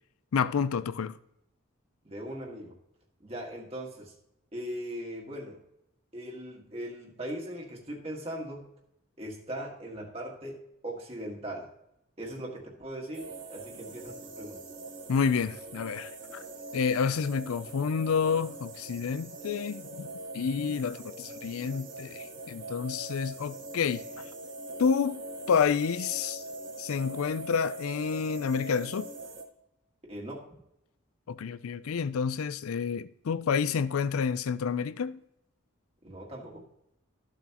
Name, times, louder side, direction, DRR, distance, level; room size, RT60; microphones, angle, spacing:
voice 1, 0.3-1.2 15.1-16.4 16.7-24.0 24.8-25.2 25.5-26.4 26.8-29.1 31.3-35.2, left 6 dB, 90° left, 0.4 m, -29 dB
voice 2, 2.0-2.8 3.2-4.1 4.5-5.6 6.1-8.7 9.2-11.7 12.2-14.6 30.1-30.5 36.0-36.6, right 1 dB, 30° right, 1.6 m, -39 dB
sound 1, 13.1-29.4, right 2 dB, 55° right, 1.4 m, -42 dB
13.5 x 7.2 x 2.9 m
head